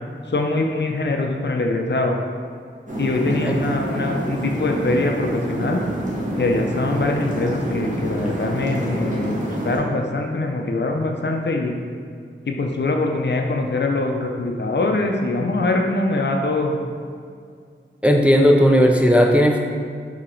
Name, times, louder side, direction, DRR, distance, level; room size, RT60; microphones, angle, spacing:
voice 1, 0.3-2.2 3.0-5.8 6.4-11.7 12.5-16.8, left 2 dB, 60° left, 2 dB, 0.5 m, -23 dB
sound 1, 2.9-9.8, right 1 dB, 40° right, 1.0 m, -27 dB
voice 2, 18.0-19.6, equal, 5° right, 2 dB, 0.3 m, -15 dB
4.3 x 2.9 x 3.8 m, 2.2 s
wide cardioid pair, 55°, 21 cm